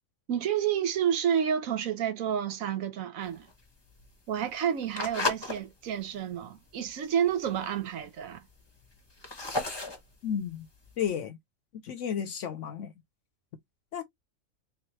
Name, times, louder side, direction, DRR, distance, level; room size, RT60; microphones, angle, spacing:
voice 1, 0.3-3.5 4.3-8.5, right 9 dB, 85° right, 1.2 m, -30 dB
sound 1, 3.2-5.6 6.0-6.4 6.9-7.0 7.1-7.2 7.4-8.0 8.5-11.1, left 2 dB, 20° left, 0.9 m, -34 dB
voice 2, 10.2-10.7 11.0-11.4 11.8-12.9 13.9-14.0, left 8 dB, 70° left, 0.9 m, -32 dB
3.6 x 3.1 x 3.0 m
omnidirectional pair, 1.4 m